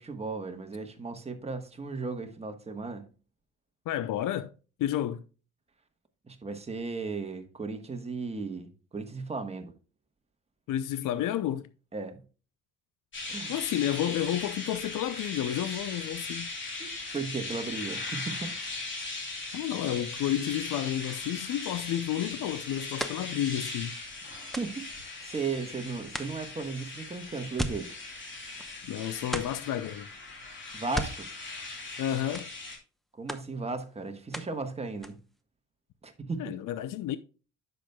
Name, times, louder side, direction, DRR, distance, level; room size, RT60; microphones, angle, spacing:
voice 1, 0.0-3.0 6.3-9.7 11.9-12.2 13.3-13.5 16.8-18.5 24.6-28.0 30.7-31.3 33.1-35.2 36.0-36.6, right 4 dB, 20° right, 1.3 m, -36 dB
voice 2, 3.9-4.5 4.8-5.2 10.7-11.7 13.5-16.5 19.5-23.9 28.8-30.1 32.0-32.5 36.4-37.2, left 11 dB, 85° left, 0.6 m, -31 dB
sound 1, 13.1-32.8, left 3 dB, 40° left, 3.0 m, -39 dB
sound 2, 21.0-25.7 26.1-28.9 29.2-29.8 30.7-32.1 32.3-33.0 33.3-34.7 34.9-35.4, equal, ahead, 0.8 m, -40 dB
9.9 x 6.8 x 2.2 m
cardioid pair, 130°, 31 cm